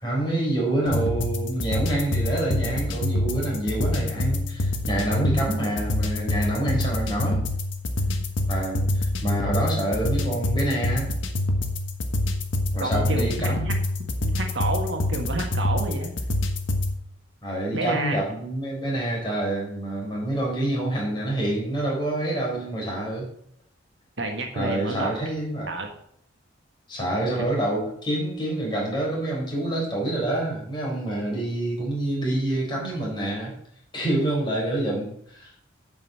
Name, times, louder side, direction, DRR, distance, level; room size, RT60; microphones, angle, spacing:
voice 1, 0.0-7.4 8.5-11.1 12.7-13.8 17.4-23.3 24.5-25.7 26.9-33.5 33.9-35.5, right 1 dB, 25° left, -3 dB, 4.2 m, -27 dB
sound 1, 0.9-16.9, left 1 dB, 75° left, 1.4 m, -26 dB
voice 2, 12.8-13.7 14.2-16.1 17.7-18.2 24.2-25.1 25.7-25.9 27.4-27.5, right 2 dB, 65° right, 3 dB, 1.6 m, -30 dB
9.0 x 5.4 x 7.5 m, 0.67 s
head